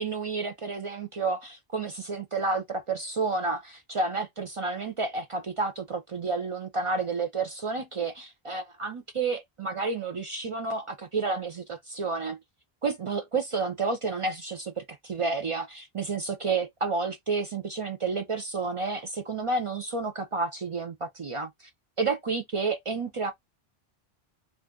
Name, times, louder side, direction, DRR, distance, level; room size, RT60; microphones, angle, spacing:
voice 1, 0.0-12.4 12.8-21.5 22.0-23.3, right 4 dB, 55° right, 0.3 m, -30 dB
2.5 x 2.2 x 3.5 m
omnidirectional pair, 1.0 m